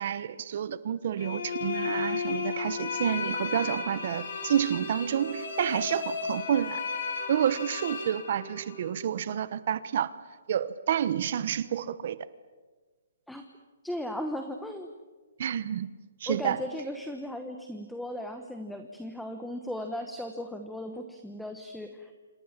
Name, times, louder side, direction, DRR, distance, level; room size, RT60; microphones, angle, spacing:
voice 1, 0.0-6.8 7.3-10.1 10.5-12.3 15.4-15.9 16.2-16.6, right 9 dB, 40° right, 16 dB, 0.9 m, -29 dB
sound 1, 1.2-8.9, left 5 dB, 50° left, 6.0 m, -34 dB
voice 2, 13.8-14.9 16.3-22.1, equal, ahead, 5 dB, 1.0 m, -37 dB
27.5 x 25.5 x 7.4 m, 1.4 s
hypercardioid pair, 175°, 0 cm